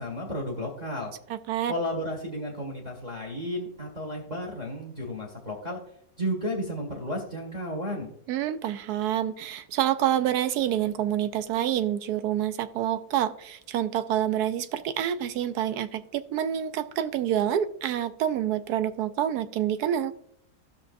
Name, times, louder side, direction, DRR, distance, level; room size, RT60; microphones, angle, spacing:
voice 1, 0.0-1.1 1.7-5.8 6.2-8.1, equal, 25° right, 0 dB, 1.7 m, -33 dB
voice 2, 1.3-1.7 8.3-20.1, right 11 dB, 75° right, 12 dB, 1.1 m, -27 dB
15.5 x 6.0 x 2.5 m, 0.72 s
omnidirectional pair, 1.7 m